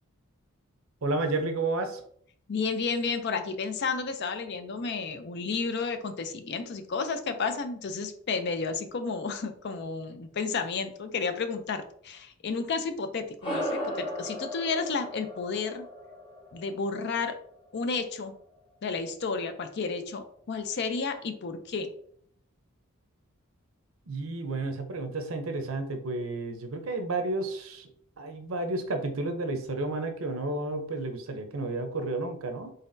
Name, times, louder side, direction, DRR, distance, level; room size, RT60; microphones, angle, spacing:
voice 1, 1.0-2.0 24.1-27.9 28.2-32.7, right 2 dB, 70° right, 7 dB, 0.7 m, -31 dB
voice 2, 2.5-15.9 16.5-17.4 17.7-18.3 18.8-21.9, left 4 dB, 50° left, 9 dB, 0.4 m, -32 dB
sound 1, 13.4-18.2, equal, 20° left, 1.1 m, -37 dB
4.1 x 3.8 x 2.6 m, 0.62 s
head